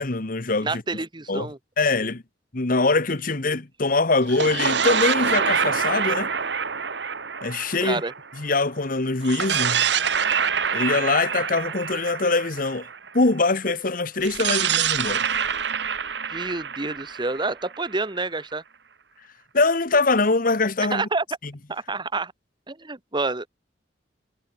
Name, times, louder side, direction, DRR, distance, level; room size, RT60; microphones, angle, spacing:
voice 1, 0.0-0.8 1.3-1.5 1.8-2.2 2.5-6.3 7.4-8.0 8.3-9.9 10.7-12.9 13.1-15.2 19.5-21.1, left 3 dB, 50° left, 1.3 m, -23 dB
voice 2, 0.6-1.6 7.8-8.1 16.2-18.6 20.9-21.2 21.7-22.3 22.7-23.5, right 3 dB, 25° right, 1.3 m, -28 dB
sound 1, 4.2-8.6 9.2-13.2 14.2-18.0, right 6 dB, 70° right, 1.8 m, -26 dB
head